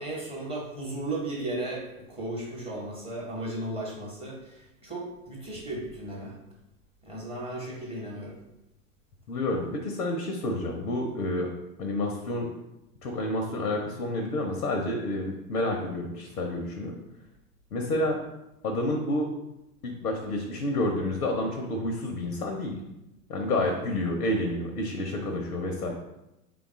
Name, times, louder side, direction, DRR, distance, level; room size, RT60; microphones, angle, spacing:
voice 1, 0.0-6.3 7.0-8.4 23.8-23.9, right 1 dB, 10° right, -4 dB, 0.8 m, -35 dB
voice 2, 9.3-11.5 11.8-12.5 13.0-17.0 17.7-18.2 18.6-19.3 19.8-22.8 23.3-25.9, left 1 dB, 85° left, 2 dB, 0.7 m, -29 dB
3.5 x 2.3 x 3.5 m, 0.89 s
hypercardioid pair, 105°, 46 cm